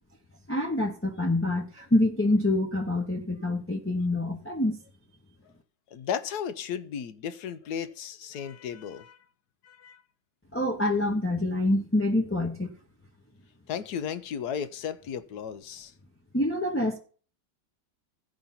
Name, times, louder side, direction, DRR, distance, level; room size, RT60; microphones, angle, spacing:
voice 1, 0.5-4.8 10.5-12.7 16.3-17.0, left 1 dB, 10° left, 0.7 m, -26 dB
voice 2, 5.9-9.2 9.6-10.0 13.7-15.9, left 8 dB, 65° left, 1.2 m, -35 dB
15.5 x 5.3 x 4.3 m
omnidirectional pair, 2.0 m